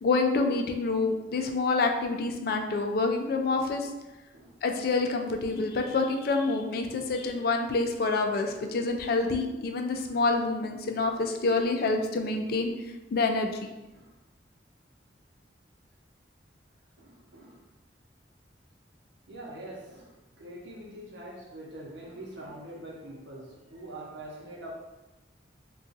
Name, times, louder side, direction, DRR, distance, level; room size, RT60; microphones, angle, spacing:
voice 1, 0.0-3.9 4.6-12.7 13.1-13.7, left 3 dB, 55° left, 4 dB, 0.4 m, -27 dB
voice 2, 4.3-4.8 6.8-7.0 9.2-9.3 13.9-14.1 17.0-17.7 19.3-24.7, right 1 dB, 85° right, -2 dB, 0.8 m, -44 dB
2.5 x 2.3 x 3.8 m, 1.1 s
head